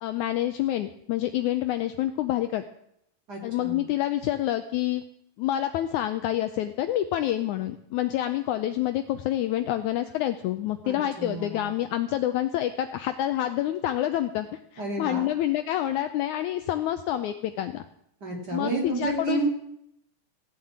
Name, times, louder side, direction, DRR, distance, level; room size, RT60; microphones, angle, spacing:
voice 1, 0.0-2.6 3.4-5.0 5.4-14.5 14.7-17.8 18.5-19.5, left 13 dB, 75° left, 9 dB, 1.8 m, -27 dB
voice 2, 3.3-3.8 10.8-11.7 14.8-15.3 18.2-19.6, right 3 dB, 30° right, 0 dB, 3.1 m, -30 dB
16.5 x 7.6 x 8.7 m, 0.74 s
omnidirectional pair, 3.9 m